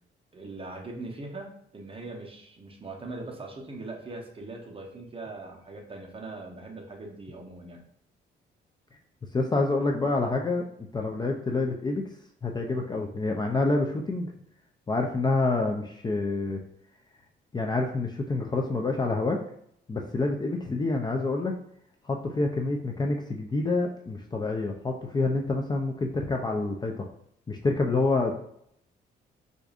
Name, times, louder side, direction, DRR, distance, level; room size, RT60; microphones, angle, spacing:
voice 1, 0.3-7.8, right 2 dB, 30° right, 1 dB, 0.9 m, -41 dB
voice 2, 9.3-10.6 10.9-12.0 12.4-14.3 14.9-16.6 17.5-19.4 19.9-21.5 22.0-27.0 27.5-28.4, left 3 dB, 20° left, 2 dB, 0.4 m, -27 dB
4.6 x 2.6 x 2.4 m, 0.72 s
cardioid pair, 90°, 20 cm